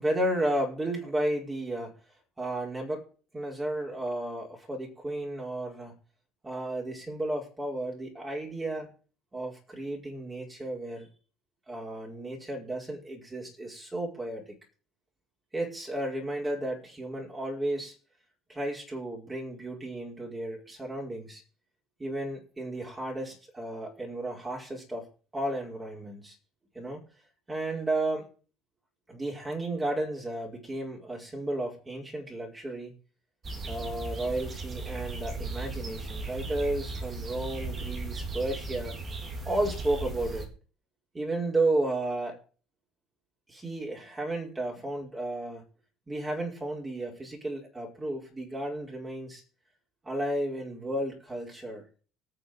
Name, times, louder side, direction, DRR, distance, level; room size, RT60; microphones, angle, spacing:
voice 1, 0.0-1.9 2.4-3.0 3.3-5.9 6.4-8.9 9.3-11.1 11.7-14.6 15.5-17.9 18.5-21.4 22.0-25.1 25.3-26.4 26.7-27.0 27.5-28.3 29.1-32.9 33.6-38.9 39.4-40.5 41.1-42.4 43.5-45.6 46.1-49.4 50.0-51.8, right 1 dB, 15° right, -1 dB, 5.0 m, -33 dB
sound 1, 33.4-40.5, right 3 dB, 30° right, 3.7 m, -37 dB
18.5 x 6.6 x 5.3 m, 0.37 s
cardioid pair, 110°, 0 cm